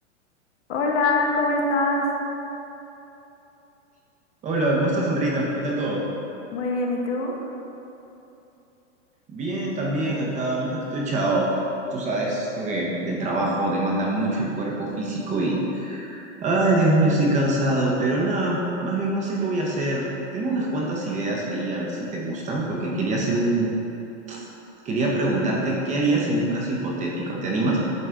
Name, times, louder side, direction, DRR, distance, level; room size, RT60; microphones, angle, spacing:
voice 1, 0.7-2.1 6.5-7.4, left 2 dB, 65° left, 0 dB, 1.0 m, -23 dB
voice 2, 4.4-6.0 9.3-11.5 11.9-20.0 20.3-23.7 24.3-24.4 24.8-27.8, right 2 dB, 20° right, -3 dB, 0.7 m, -24 dB
7.9 x 3.3 x 3.7 m, 2.9 s
hypercardioid pair, 130°, 37 cm